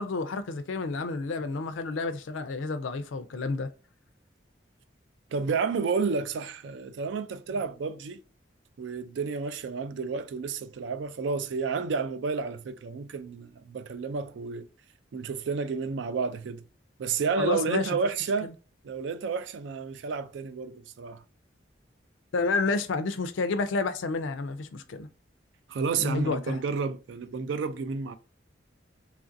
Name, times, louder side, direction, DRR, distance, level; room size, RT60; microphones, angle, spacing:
voice 1, 0.0-3.7 17.4-17.9 18.4-18.5 22.3-25.1 26.0-26.6, left 3 dB, 85° left, 0.4 m, -30 dB
voice 2, 5.3-8.2 8.8-14.7 15.1-16.6 17.0-18.5 18.8-21.2 25.7-28.2, right 5 dB, 70° right, 0.3 m, -31 dB
3.1 x 2.5 x 2.5 m
head